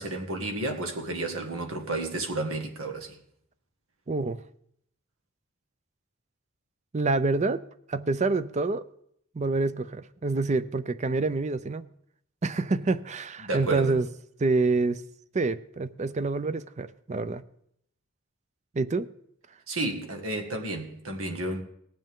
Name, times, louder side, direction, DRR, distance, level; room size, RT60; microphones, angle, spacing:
voice 1, 0.0-3.2 13.4-14.0 19.7-21.6, right 2 dB, 85° right, 1.8 m, -31 dB
voice 2, 4.1-4.4 6.9-7.6 7.9-8.8 9.3-11.9 12.4-14.1 14.4-15.0 15.3-17.4 18.7-19.1, right 3 dB, 35° right, 0.5 m, -27 dB
19.0 x 7.7 x 3.7 m
head